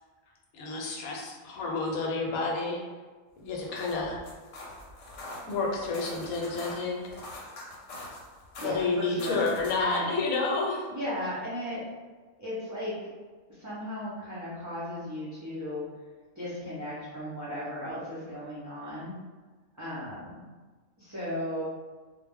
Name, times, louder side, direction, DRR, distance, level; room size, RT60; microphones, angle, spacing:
voice 1, 0.5-2.8 3.4-4.2 5.5-7.1 8.6-10.9, left 3 dB, 90° left, -1 dB, 1.1 m, -30 dB
sound 1, 3.5-9.9, left 1 dB, 65° left, 0.9 m, -44 dB
voice 2, 8.6-10.1 10.9-11.8 12.4-13.1 13.5-15.8 16.4-19.2 19.8-20.4 21.0-21.6, equal, 30° right, -11 dB, 0.3 m, -36 dB
2.3 x 2.0 x 3.5 m, 1.4 s
omnidirectional pair, 1.4 m